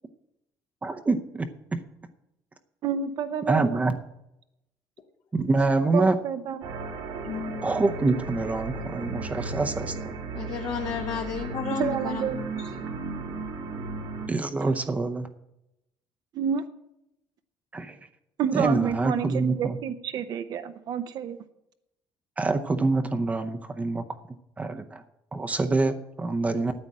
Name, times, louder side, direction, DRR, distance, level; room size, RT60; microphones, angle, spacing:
voice 1, 0.8-1.8 3.5-3.9 5.3-6.2 7.6-10.1 14.3-15.3 17.7-18.0 18.5-19.8 22.4-24.0 24.6-25.0 25.3-26.7, right 3 dB, 15° right, 7 dB, 0.7 m, -26 dB
voice 2, 2.8-3.8 5.9-6.6 11.7-12.4 16.3-16.6 18.4-21.4, right 8 dB, 55° right, 9 dB, 0.7 m, -29 dB
sound 1, 6.6-14.3, right 4 dB, 85° right, 2.5 m, -35 dB
voice 3, 7.2-7.6 10.3-12.5, left 7 dB, 45° left, 5 dB, 0.8 m, -32 dB
9.5 x 8.7 x 7.6 m, 0.86 s
cardioid pair, 150°, 8 cm